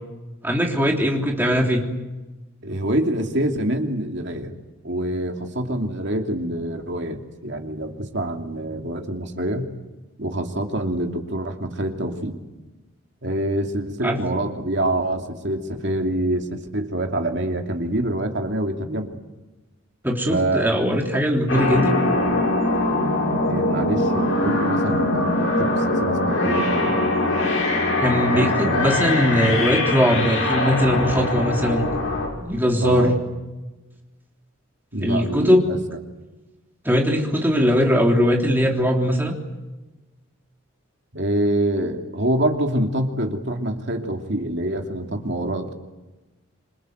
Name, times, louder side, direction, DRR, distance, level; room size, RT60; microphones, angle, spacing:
voice 1, 0.4-1.8 14.0-14.2 20.0-21.9 28.0-31.9 32.4-33.1 35.0-35.7 36.8-39.3, equal, 10° right, 1 dB, 3.4 m, -20 dB
voice 2, 2.6-4.6 4.8-9.7 10.2-12.4 13.2-19.1 20.3-20.7 21.1-21.2 23.5-27.0 28.3-28.9 32.8-33.2 34.9-35.8 41.1-45.7, right 1 dB, 55° right, 3 dB, 2.8 m, -26 dB
sound 1, 21.5-32.3, left 2 dB, 65° left, 7.0 m, -22 dB
27.0 x 25.0 x 8.1 m, 1.1 s
head